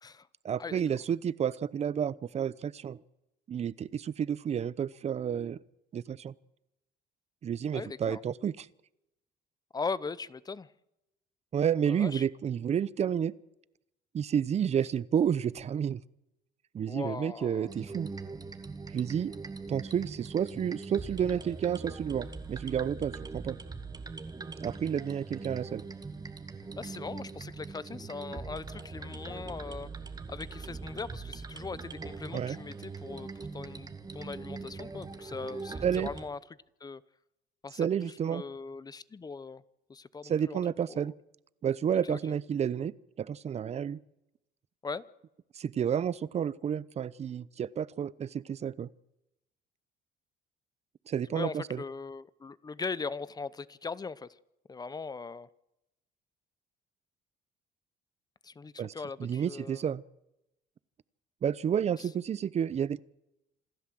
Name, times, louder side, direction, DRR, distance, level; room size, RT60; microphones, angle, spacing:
voice 1, 0.4-3.0 3.5-5.6 5.9-6.3 7.4-8.7 11.5-13.3 14.1-16.0 16.7-18.1 18.9-19.3 19.7-23.6 24.6-25.8 32.3-32.6 35.8-36.1 37.8-38.4 40.2-41.1 41.6-42.9 43.2-44.0 45.6-48.9 51.1-51.8 58.8-58.9 59.2-60.0 61.4-63.0, right 8 dB, 40° right, 0.8 m, -30 dB
voice 2, 7.7-8.2 9.7-10.7 11.9-12.2 16.9-17.7 26.8-29.9 30.3-36.4 36.8-37.0 37.6-39.6 39.9-40.6 40.9-41.1 42.0-42.4 44.8-45.1 51.3-54.4 54.7-55.5 58.4-59.8 61.9-62.1, left 4 dB, 25° left, 0.8 m, -40 dB
sound 1, 17.7-36.3, right 4 dB, 25° right, 1.9 m, -42 dB
27.0 x 12.5 x 7.7 m
cardioid pair, 110°, 17 cm